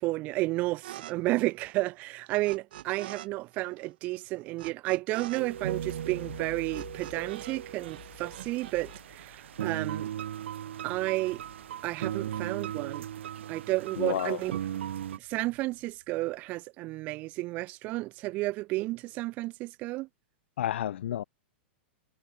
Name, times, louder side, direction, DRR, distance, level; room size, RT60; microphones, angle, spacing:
voice 1, 0.0-10.1 10.8-11.4 11.8-13.1 13.5-14.5 15.2-20.1, right 20 dB, 25° right, 0.7 m, -32 dB
sound 1, 0.8-1.1 1.4-3.3 3.5-7.6 7.8-9.0, right 13 dB, 55° right, 1.9 m, -45 dB
sound 2, 5.1-13.4 13.8-16.4, left 13 dB, 55° left, 3.7 m, -53 dB
sound 3, 5.4-15.2, right 11 dB, 85° right, 0.8 m, -37 dB
voice 2, 14.0-14.4 20.6-21.2, left 11 dB, 75° left, 0.8 m, -30 dB
supercardioid pair, 175°, 6 cm